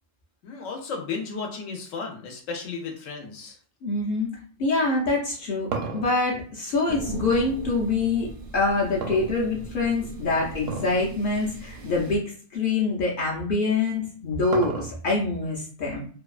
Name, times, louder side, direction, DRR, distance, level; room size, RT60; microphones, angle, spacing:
voice 1, 0.4-3.6, left 4 dB, 80° left, 2 dB, 1.0 m, -34 dB
voice 2, 3.8-4.3 4.6-12.2 12.5-16.1, left 3 dB, 55° left, -3 dB, 0.7 m, -25 dB
sound 1, 5.2-7.6 9.0-9.9 10.6-11.0 11.4-11.5 12.2-12.4 13.7-15.2, right 4 dB, 85° right, 1.0 m, -33 dB
sound 2, 6.9-12.2, right 3 dB, 60° right, 0.6 m, -39 dB
2.6 x 2.2 x 2.4 m, 0.44 s
omnidirectional pair, 1.3 m